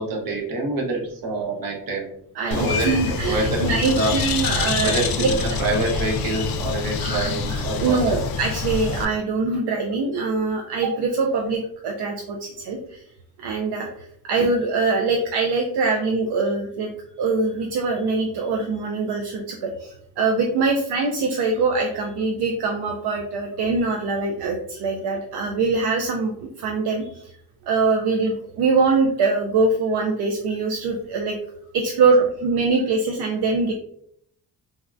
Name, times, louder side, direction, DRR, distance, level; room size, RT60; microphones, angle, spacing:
voice 1, 0.0-2.1 2.5-4.1 4.8-8.3 15.9-16.0, right 2 dB, 55° right, -1 dB, 1.0 m, -26 dB
voice 2, 2.4-5.3 7.0-13.0 13.4-16.9 17.2-27.3 27.7-31.4 31.7-33.7, right 4 dB, 75° right, 2 dB, 0.5 m, -23 dB
Bird, 2.5-9.1, left 5 dB, 65° left, 0.5 m, -26 dB
3.5 x 2.1 x 2.5 m, 0.70 s
cardioid pair, 105°, 40 cm